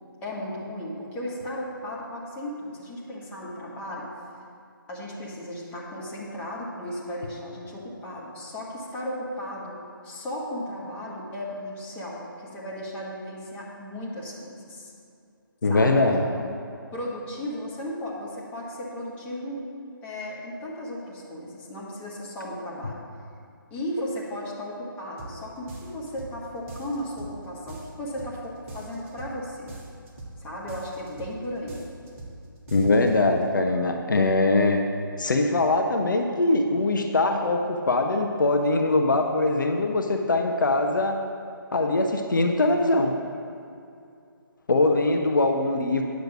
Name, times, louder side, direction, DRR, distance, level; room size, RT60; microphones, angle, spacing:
voice 1, 0.2-4.1 4.9-9.8 10.0-14.9 15.7-16.2 16.9-19.6 20.0-23.0 23.7-29.7 30.4-31.8, left 1 dB, 15° left, -5 dB, 1.3 m, -35 dB
voice 2, 15.6-16.2 32.7-34.8 35.2-41.2 41.7-43.1 44.7-46.0, left 2 dB, 60° left, 4 dB, 0.8 m, -22 dB
sound 1, 25.2-25.4 25.7-26.4 26.7-27.4 27.7-28.4 28.7-29.4 29.7-30.4 30.7-31.4 31.7-32.4 32.7-33.1, right 2 dB, 35° right, 1.5 m, -41 dB
9.5 x 6.6 x 6.0 m, 2.5 s
figure-of-eight pair, 145°, 12 cm